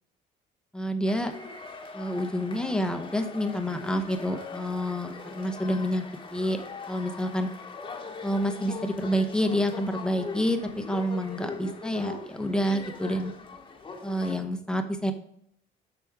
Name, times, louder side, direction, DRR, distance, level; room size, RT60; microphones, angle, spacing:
voice 1, 0.7-1.3 1.9-6.0 6.3-6.6 6.9-7.5 8.2-13.3 14.0-15.1, equal, 5° left, 6 dB, 0.8 m, -28 dB
sound 1, 1.1-14.4, left 4 dB, 30° left, 1.2 m, -41 dB
8.2 x 6.0 x 3.5 m, 0.71 s
cardioid pair, 110°, 17 cm